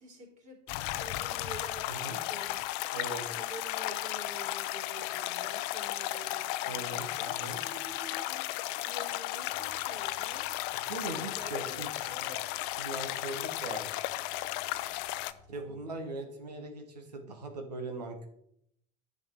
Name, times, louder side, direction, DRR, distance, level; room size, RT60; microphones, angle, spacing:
voice 1, 0.0-3.0 3.3-10.6 11.2-12.4 15.7-16.2, right 1 dB, 35° right, 0 dB, 3.3 m, -49 dB
sound 1, 0.7-15.3, left 16 dB, 55° left, 0.6 m, -35 dB
voice 2, 1.9-2.2 2.9-3.3 6.7-7.6 10.9-12.1 12.8-14.0 15.5-18.3, right 2 dB, 80° right, 5 dB, 1.5 m, -40 dB
sound 2, 9.5-15.8, left 4 dB, 5° right, 1.3 m, -60 dB
10.5 x 5.9 x 4.6 m, 0.73 s
figure-of-eight pair, 65°, 21 cm